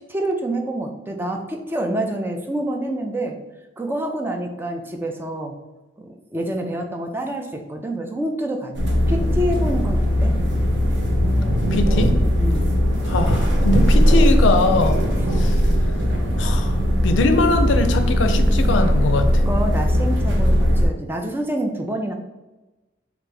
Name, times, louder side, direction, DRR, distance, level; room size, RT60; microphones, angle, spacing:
voice 1, 0.1-3.4 3.8-5.6 6.0-10.3 12.1-12.7 19.5-22.1, right 1 dB, 10° right, 3 dB, 0.3 m, -27 dB
sound 1, 8.8-20.9, equal, 70° right, 0.7 m, -19 dB
voice 2, 11.7-12.1 13.0-15.0 15.3-15.6 16.4-16.8 17.0-19.4, left 3 dB, 80° left, 8 dB, 0.4 m, -21 dB
3.3 x 2.5 x 3.3 m, 1.1 s
head